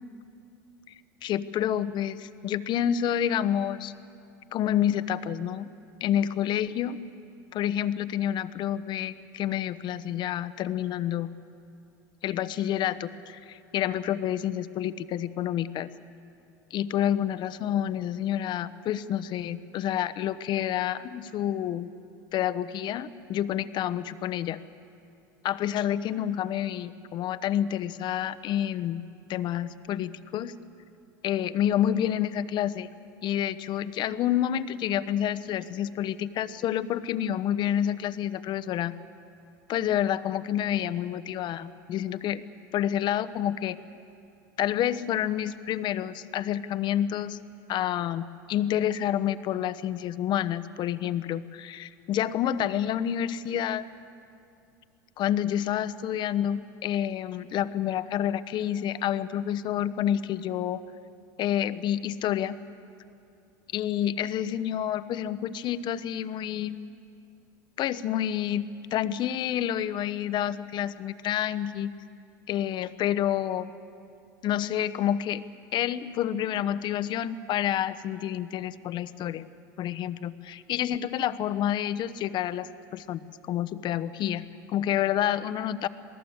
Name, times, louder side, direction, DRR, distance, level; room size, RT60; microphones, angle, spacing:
voice 1, 1.2-3.9 4.5-5.7 6.0-7.0 7.5-11.3 12.2-15.9 16.7-21.9 22.3-24.6 25.4-29.0 29.3-30.5 31.2-32.9 33.2-38.9 39.7-42.4 42.7-43.8 44.6-47.4 47.7-53.9 55.2-60.8 61.4-62.6 63.7-66.8 67.8-71.9 72.5-73.7 74.4-75.4 75.7-79.5 79.8-83.2 83.5-85.9, left 10 dB, 50° left, 13 dB, 1.0 m, -28 dB
27.0 x 18.5 x 8.1 m, 2.5 s
supercardioid pair, 95°, 10 cm